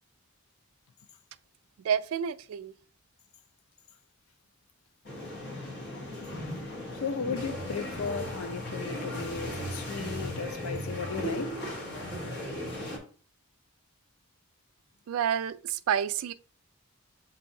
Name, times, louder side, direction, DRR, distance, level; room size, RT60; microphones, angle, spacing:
voice 1, 1.8-2.7 15.1-16.3, right 8 dB, 75° right, 0.3 m, -29 dB
sound 1, 5.0-13.0, equal, 50° left, 1.2 m, -36 dB
voice 2, 6.9-11.5, left 5 dB, 75° left, 0.4 m, -35 dB
7.5 x 2.7 x 2.6 m
head